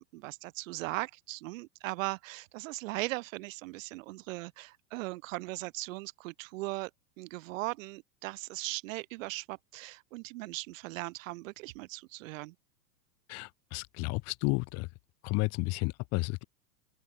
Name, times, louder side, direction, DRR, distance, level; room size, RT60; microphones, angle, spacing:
voice 1, 0.0-6.9 7.2-12.5, right 21 dB, 50° right, 0.9 m, -38 dB
voice 2, 13.3-14.9 15.2-16.4, left 27 dB, 30° left, 0.7 m, -32 dB
open air
hypercardioid pair, 100°, 50 cm